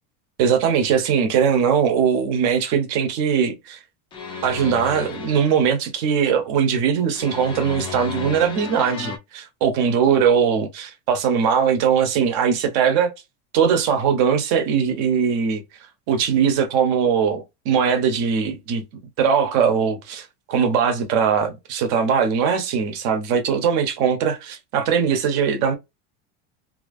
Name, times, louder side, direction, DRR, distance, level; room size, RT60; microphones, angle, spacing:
voice 1, 0.4-3.8 4.4-13.1 13.5-15.6 16.1-18.8 19.2-25.7, right 7 dB, 50° right, 0.9 m, -20 dB
sound 1, 4.1-5.8 7.2-9.2, left 5 dB, 15° left, 0.3 m, -33 dB
2.8 x 2.5 x 2.6 m
cardioid pair, 170°, 36 cm